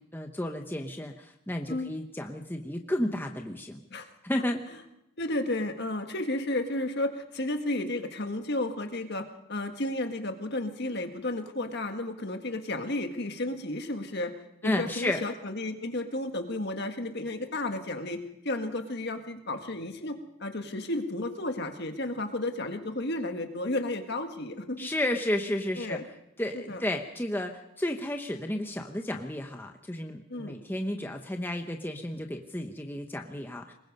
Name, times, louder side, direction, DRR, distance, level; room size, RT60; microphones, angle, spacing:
voice 1, 0.0-3.8 4.2-4.6 14.6-15.2 24.8-26.0 26.4-33.7, left 1 dB, 10° left, 3 dB, 0.9 m, -32 dB
voice 2, 5.2-14.3 14.6-24.9 25.8-26.1 26.5-26.8 30.3-30.6, left 2 dB, 50° left, 6 dB, 1.7 m, -33 dB
23.5 x 21.0 x 5.4 m, 0.85 s
head